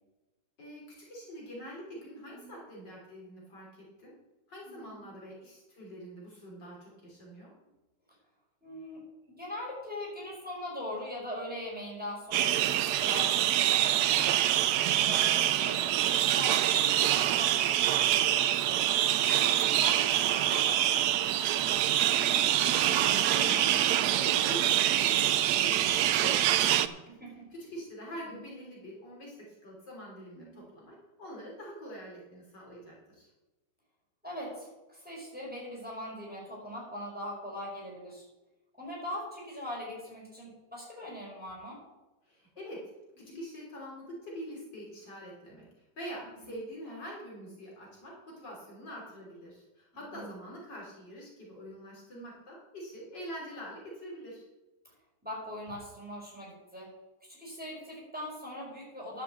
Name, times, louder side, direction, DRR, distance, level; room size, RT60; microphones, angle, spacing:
voice 1, 0.6-3.7 4.0-4.1 4.5-7.5 22.1-27.0 27.5-33.3 42.2-42.8 43.2-45.7 46.0-54.4, equal, 60° left, -4 dB, 3.8 m, -45 dB
voice 2, 8.6-9.0 9.3-14.2 15.0-18.8 19.3-21.1 25.5-25.7 27.1-27.5 28.3-28.4 30.3-30.6 34.2-38.2 38.8-41.8 43.3-43.4 46.3-46.5 50.1-50.3 52.1-52.2 55.2-56.9 57.2-59.2, left 1 dB, 5° right, -4 dB, 4.7 m, -41 dB
sound 1, 12.3-26.9, right 12 dB, 75° right, 0.9 m, -25 dB
11.5 x 6.7 x 7.3 m, 1.1 s
omnidirectional pair, 2.2 m